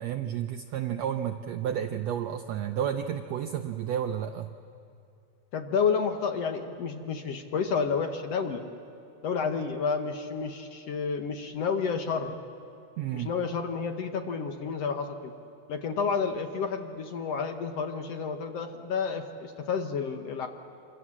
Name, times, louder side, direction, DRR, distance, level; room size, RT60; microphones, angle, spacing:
voice 1, 0.0-4.5 13.0-13.3, right 9 dB, 80° right, 7 dB, 1.5 m, -31 dB
voice 2, 5.5-8.6 9.2-12.4 13.1-15.3 15.7-20.5, left 5 dB, 60° left, 5 dB, 1.8 m, -30 dB
27.0 x 25.5 x 7.4 m, 2.6 s
omnidirectional pair, 3.8 m